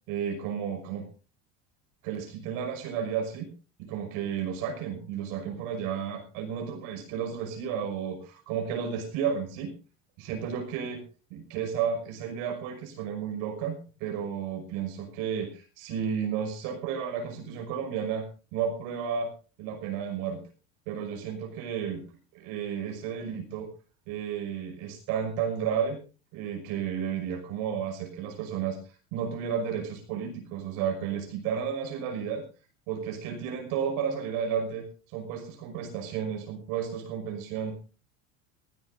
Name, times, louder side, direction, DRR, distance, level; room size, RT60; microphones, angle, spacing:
voice 1, 0.1-1.1 2.0-3.5 3.8-9.7 10.2-11.0 11.3-19.3 19.6-20.4 20.9-22.0 22.3-23.7 24.1-26.0 26.3-32.4 32.9-37.8, right 7 dB, 65° right, 4 dB, 5.8 m, -32 dB
24.5 x 16.0 x 2.7 m, 0.34 s
supercardioid pair, 110°, 38 cm